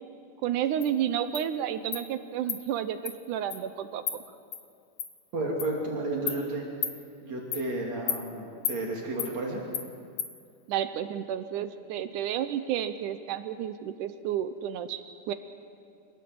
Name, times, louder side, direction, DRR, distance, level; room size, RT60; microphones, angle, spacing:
voice 1, 0.4-4.0 10.7-15.3, right 10 dB, 75° right, 11 dB, 2.2 m, -31 dB
Insect, 0.8-0.9 1.4-1.5 1.9-2.0 2.5-2.6 3.1-3.2 3.5-3.6 4.1-4.2 4.5-4.6 5.0-5.1 5.6-5.7 6.3-6.4 6.8-7.0 7.5-7.7 8.1-8.2 8.7-8.8 9.2-9.3 9.7-9.9 10.2-10.3, left 9 dB, 70° left, 2.8 m, -32 dB
voice 2, 5.3-6.6 7.2-9.6, right 2 dB, 55° right, -2 dB, 4.0 m, -32 dB
25.5 x 18.5 x 7.9 m, 2.4 s
omnidirectional pair, 3.8 m